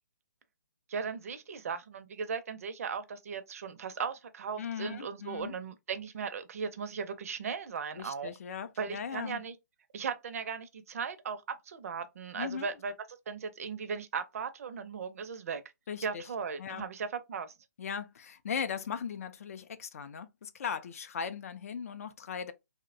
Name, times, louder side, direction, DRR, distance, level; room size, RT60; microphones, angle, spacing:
voice 1, 0.9-8.3 8.8-9.5 9.9-12.9 13.3-15.6 16.0-17.5, right 6 dB, 50° right, 0.5 m, -37 dB
voice 2, 4.6-5.6 8.0-9.4 12.3-12.7 15.9-16.3 16.6-16.9 17.8-22.5, left 7 dB, 50° left, 0.4 m, -38 dB
2.7 x 2.1 x 2.5 m
hypercardioid pair, 155°, 10 cm